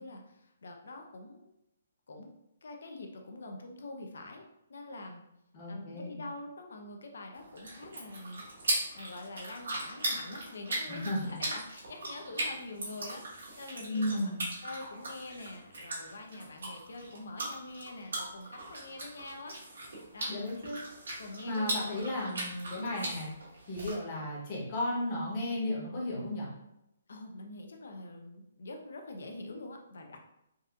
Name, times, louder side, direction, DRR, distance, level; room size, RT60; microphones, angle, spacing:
voice 1, 0.0-1.5 2.1-2.3 2.6-4.4 4.7-5.2 5.7-8.4 8.9-14.3 14.6-20.3 21.2-21.9 22.5-22.6 27.1-30.2, left 2 dB, 70° left, 3 dB, 0.6 m, -45 dB
voice 2, 5.5-6.2 10.9-11.4 13.9-14.5 20.3-20.8 21.4-23.3 23.7-26.5, left 1 dB, 25° left, -4 dB, 0.9 m, -34 dB
sound 1, 7.3-23.9, right 1 dB, 80° right, 1.5 m, -39 dB
4.0 x 2.5 x 2.4 m, 0.84 s
hypercardioid pair, 175°, 0 cm